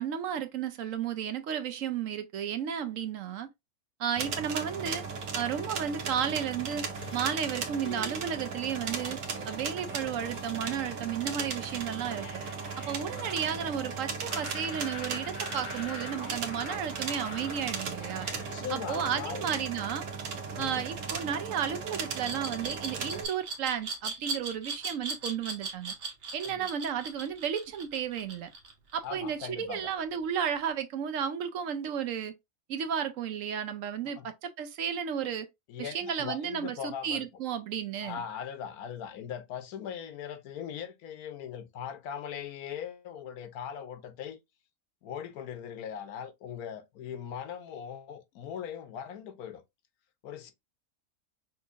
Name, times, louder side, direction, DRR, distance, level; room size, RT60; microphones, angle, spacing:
voice 1, 0.0-3.5 4.0-5.0 5.3-6.9 7.1-9.2 9.4-12.4 12.8-18.3 18.7-20.0 20.6-25.9 26.3-28.5 28.9-32.3 32.7-35.5 35.8-38.2, right 8 dB, 70° right, 0.9 m, -33 dB
sound 1, 4.2-23.3, right 5 dB, 90° right, 1.4 m, -37 dB
sound 2, 6.9-18.6, left 3 dB, 60° left, 2.0 m, -46 dB
voice 2, 18.3-19.6 20.5-20.9 26.4-26.7 29.0-29.9 34.0-34.3 35.7-37.3 38.0-44.4 45.0-49.6 50.2-50.5, left 8 dB, 85° left, 1.2 m, -40 dB
Glass, 22.2-29.1, right 4 dB, 45° right, 1.1 m, -37 dB
5.4 x 3.0 x 2.5 m
omnidirectional pair, 1.5 m